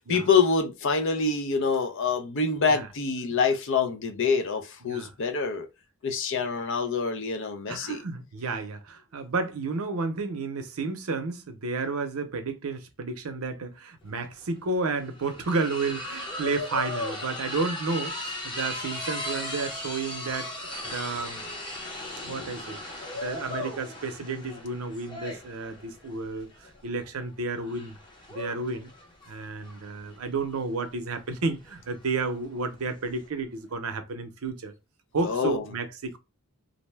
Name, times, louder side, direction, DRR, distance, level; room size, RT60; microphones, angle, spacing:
voice 1, 0.0-5.7 6.0-8.0 22.0-22.2 35.2-35.6, left 5 dB, 55° left, 0.5 m, -26 dB
voice 2, 4.8-5.1 7.7-21.4 22.2-22.8 23.1-26.5 26.8-28.0 28.3-28.9 29.3-34.7 35.1-36.2, right 3 dB, 75° right, 0.6 m, -31 dB
sound 1, 14.1-14.2 14.4-33.3, left 1 dB, 20° left, 0.8 m, -37 dB
2.5 x 2.1 x 3.2 m
head